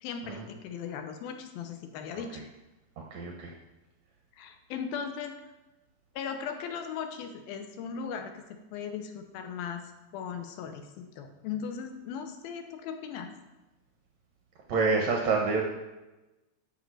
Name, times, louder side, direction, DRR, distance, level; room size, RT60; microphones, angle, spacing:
voice 1, 0.0-2.4 4.3-5.3 6.2-13.3, left 7 dB, 70° left, 6 dB, 2.5 m, -38 dB
voice 2, 3.1-3.5 14.7-15.7, right 4 dB, 75° right, 1 dB, 1.6 m, -27 dB
11.0 x 5.6 x 8.0 m, 1.1 s
omnidirectional pair, 4.9 m